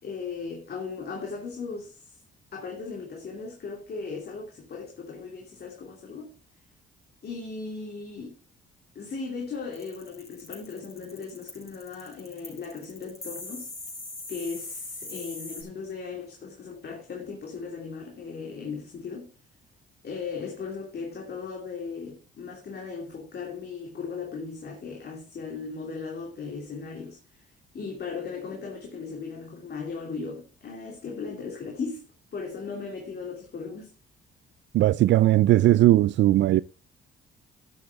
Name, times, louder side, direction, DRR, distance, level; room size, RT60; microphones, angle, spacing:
voice 1, 0.0-2.2 2.5-6.3 7.2-8.4 8.9-13.7 14.3-19.3 20.0-27.5 27.7-32.1 32.3-33.9, left 5 dB, 55° left, 3.0 m, -37 dB
sound 1, 9.7-15.6, left 2 dB, 30° left, 5.6 m, -40 dB
voice 2, 34.7-36.6, right 14 dB, 65° right, 0.4 m, -18 dB
12.5 x 8.5 x 3.6 m
cardioid pair, 90°, 20 cm